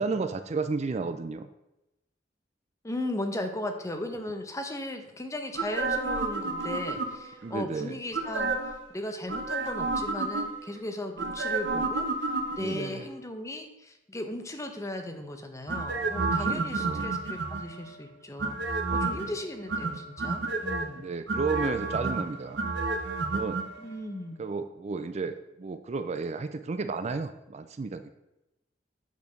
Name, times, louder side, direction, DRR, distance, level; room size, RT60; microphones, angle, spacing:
voice 1, 0.0-1.5 7.4-8.0 12.6-13.1 16.3-17.1 19.1-19.2 21.0-22.6 23.3-23.6 24.4-28.1, right 4 dB, 40° right, 10 dB, 0.4 m, -32 dB
voice 2, 2.8-12.3 12.5-21.1 23.8-24.4, left 1 dB, 15° left, 5 dB, 0.8 m, -37 dB
sound 1, 5.6-7.4 8.1-8.8 9.3-10.7 11.2-12.9 15.7-17.8 18.4-19.3 19.7-20.9 21.3-23.6 23.9-24.0, right 3 dB, 80° right, 0.9 m, -30 dB
8.4 x 4.5 x 5.2 m, 0.92 s
head